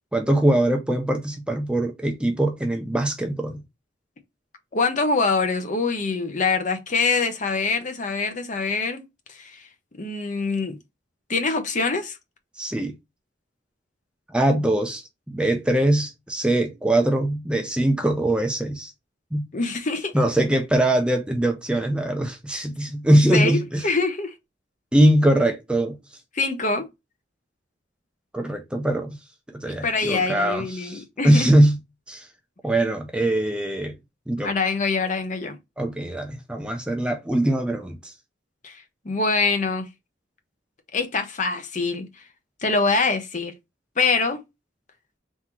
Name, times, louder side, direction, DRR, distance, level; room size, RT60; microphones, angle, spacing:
voice 1, 0.1-3.6 12.6-12.9 14.3-18.9 19.3-19.5 20.1-23.8 24.9-25.9 28.3-29.2 29.5-31.8 32.1-32.3 32.6-33.9 34.3-34.5 35.8-38.1, right 1 dB, 5° right, 0.4 m, -22 dB
voice 2, 4.7-9.0 9.3-9.7 10.0-10.8 11.3-12.2 19.5-20.1 22.7-22.8 23.3-24.3 26.3-26.9 29.7-31.5 34.4-35.6 38.6-39.9 40.9-42.2 42.6-43.5 44.0-44.4, left 4 dB, 40° left, 0.7 m, -24 dB
3.7 x 2.8 x 4.3 m
head